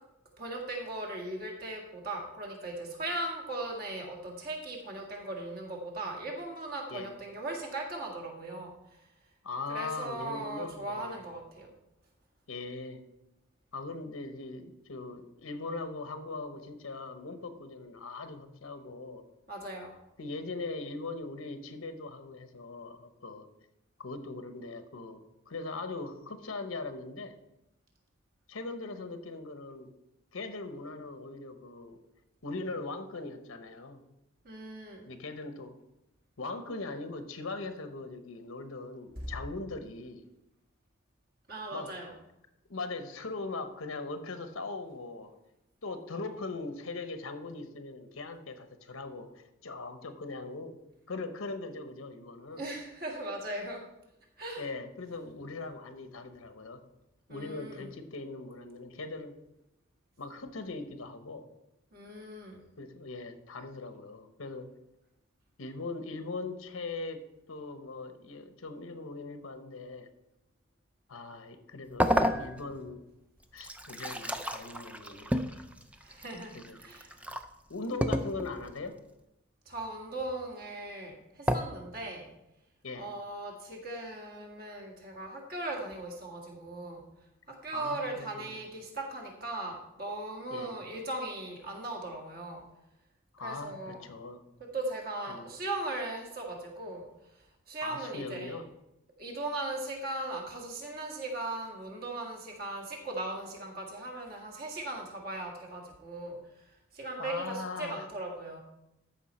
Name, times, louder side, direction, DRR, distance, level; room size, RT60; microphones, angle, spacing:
voice 1, 0.4-8.7 9.7-11.7 19.5-19.9 34.4-35.1 39.2-39.3 41.5-42.1 52.6-53.8 54.4-54.6 57.3-57.9 61.9-62.6 76.0-76.5 76.8-77.1 79.7-82.3 83.0-87.0 87.5-92.6 93.4-94.0 94.6-97.1 97.7-98.5 99.2-106.4 106.9-108.6, right 2 dB, 45° right, 1 dB, 1.9 m, -38 dB
voice 2, 9.4-11.2 12.5-13.0 13.7-19.2 20.2-23.5 24.0-27.4 28.5-29.9 30.3-32.0 32.4-34.0 35.1-35.7 36.4-40.2 41.7-41.9 42.7-45.3 45.8-50.8 51.1-52.6 54.6-56.8 57.3-59.4 60.2-61.4 62.8-64.7 65.6-70.1 71.1-73.0 73.5-75.7 76.5-76.8 77.7-79.0 82.8-83.1 87.7-88.4 90.5-90.7 93.3-94.4 95.3-95.5 97.8-98.6 107.2-108.0, left 3 dB, 85° left, 8 dB, 0.9 m, -40 dB
sound 1, 72.0-72.9 73.4-77.5 78.0-78.7 81.5-81.6, equal, 5° right, 0.4 m, -31 dB
13.5 x 5.6 x 4.2 m, 0.88 s
head